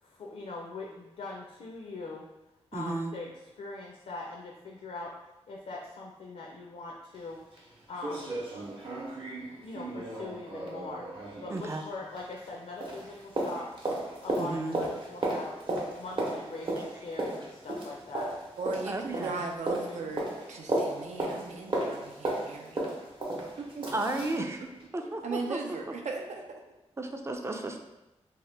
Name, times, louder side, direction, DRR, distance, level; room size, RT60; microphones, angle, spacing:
voice 1, 0.0-2.3 2.7-5.1 5.5-7.4 7.9-8.4 9.6-11.1 11.4-13.8 14.2-15.6 16.0-18.3 19.9-20.0, left 3 dB, 75° left, -1 dB, 0.4 m, -41 dB
voice 2, 2.7-3.1 11.5-11.8 14.4-14.8 18.9-19.3 23.9-24.6 24.9-25.6 27.0-27.8, right 2 dB, 25° right, 4 dB, 0.3 m, -33 dB
sound 1, 7.1-7.2 7.6-7.7 8.0-12.6 12.8-24.4 24.8-24.9, right 1 dB, 45° right, 0.7 m, -35 dB
voice 3, 18.6-22.9 23.6-24.7 25.0-26.6, right 3 dB, 85° right, 2 dB, 0.4 m, -38 dB
2.8 x 2.1 x 3.2 m, 0.95 s
cardioid pair, 70°, 12 cm